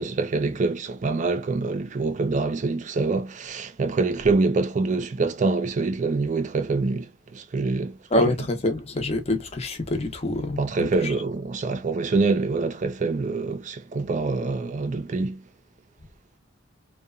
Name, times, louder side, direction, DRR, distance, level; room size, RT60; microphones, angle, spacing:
voice 1, 0.0-8.3 10.6-15.4, right 3 dB, 40° right, 0.4 m, -25 dB
voice 2, 8.1-11.1, left 1 dB, 35° left, 0.7 m, -26 dB
2.8 x 2.2 x 2.3 m
head